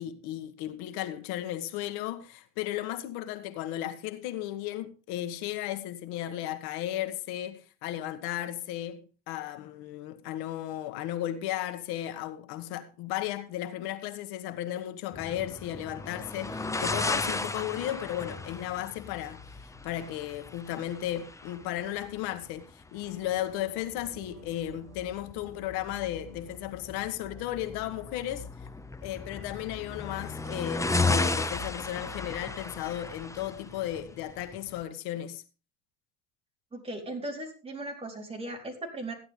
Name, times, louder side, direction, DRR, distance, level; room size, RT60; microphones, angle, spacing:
voice 1, 0.0-28.5 29.0-35.4, left 13 dB, 80° left, 1.5 m, -35 dB
sound 1, 15.1-34.8, left 3 dB, 10° left, 0.8 m, -35 dB
sound 2, 23.0-28.7, right 4 dB, 55° right, 3.0 m, -55 dB
voice 2, 36.7-39.1, right 1 dB, 15° right, 4.2 m, -37 dB
15.0 x 11.0 x 3.6 m
cardioid pair, 125°, 38 cm